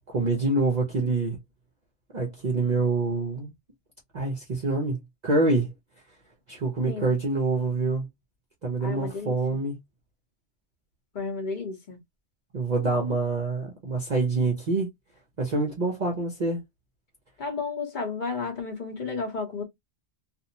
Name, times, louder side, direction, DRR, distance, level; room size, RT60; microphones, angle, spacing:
voice 1, 0.1-1.4 2.1-3.5 4.1-5.0 5.2-5.7 6.5-8.1 8.6-9.7 12.5-14.9 15.4-16.6, right 3 dB, 45° right, 0.7 m, -26 dB
voice 2, 8.8-9.3 11.1-12.0 17.4-19.6, left 4 dB, 45° left, 1.0 m, -32 dB
2.6 x 2.0 x 2.7 m
omnidirectional pair, 1.2 m